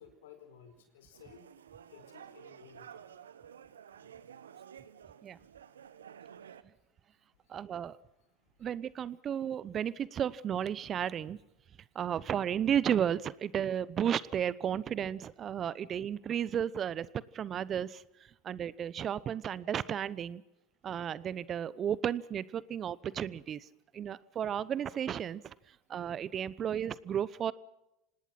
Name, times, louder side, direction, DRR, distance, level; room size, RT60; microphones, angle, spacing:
voice 1, 0.0-1.4 1.9-3.0, left 7 dB, 75° left, 8 dB, 4.7 m, -55 dB
sound 1, 1.1-6.6, right 8 dB, 85° right, 1.0 m, -52 dB
voice 2, 7.5-8.0 8.6-11.4 11.9-18.0 18.4-20.4 20.8-23.6 23.9-25.5 25.9-27.5, right 9 dB, 40° right, 20 dB, 0.9 m, -33 dB
26.5 x 19.0 x 5.9 m, 0.88 s
hypercardioid pair, 80°, 0 cm